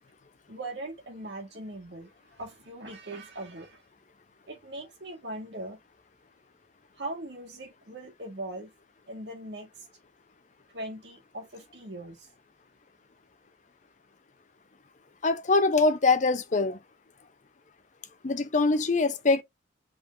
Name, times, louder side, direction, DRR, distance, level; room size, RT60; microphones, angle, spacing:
voice 1, 0.5-3.8 4.5-5.8 7.0-8.7 9.1-9.8 10.7-12.3, right 1 dB, 60° right, 1.6 m, -40 dB
voice 2, 15.2-16.8 18.2-19.4, left 3 dB, 40° left, 0.6 m, -23 dB
5.4 x 3.8 x 2.5 m
head